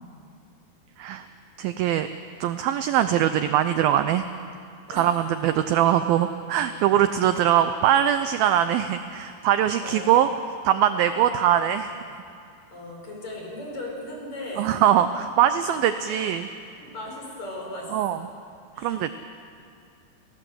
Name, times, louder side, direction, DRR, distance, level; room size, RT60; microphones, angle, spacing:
voice 1, 1.6-2.1 2.4-4.3 4.9-10.3 10.7-12.0 14.6-16.5 17.9-18.2 18.8-19.2, right 11 dB, 85° right, 10 dB, 2.1 m, -22 dB
voice 2, 9.8-10.2 11.1-11.6 12.7-14.8 16.0-16.5 16.8-18.3 18.7-19.2, left 1 dB, 40° left, 0 dB, 5.9 m, -38 dB
30.0 x 17.0 x 7.9 m, 2.4 s
omnidirectional pair, 5.0 m